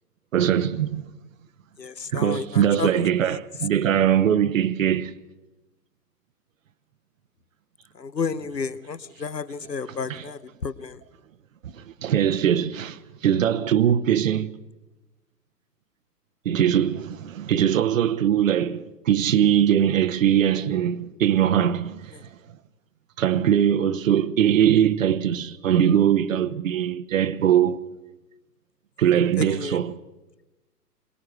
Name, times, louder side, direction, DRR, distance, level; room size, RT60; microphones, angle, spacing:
voice 1, 0.3-1.0 2.1-5.1 10.1-10.2 11.6-14.5 16.4-22.3 23.2-27.8 29.0-30.0, right 9 dB, 55° right, 1.0 m, -21 dB
voice 2, 1.8-3.4 7.9-11.0 22.1-22.2 29.4-29.8, left 5 dB, 90° left, 0.9 m, -32 dB
22.5 x 21.0 x 6.4 m
figure-of-eight pair, 115°, 48 cm